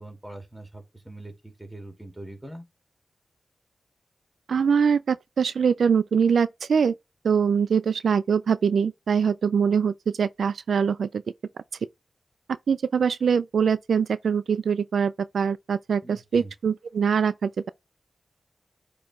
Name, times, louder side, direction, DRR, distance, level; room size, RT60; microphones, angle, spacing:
voice 1, 0.0-2.6 16.0-16.5, right 1 dB, 5° right, 2.7 m, -42 dB
voice 2, 4.5-6.9 7.2-11.1 12.7-17.7, right 6 dB, 85° right, 0.3 m, -23 dB
8.6 x 3.1 x 3.7 m
cardioid pair, 60°, 0 cm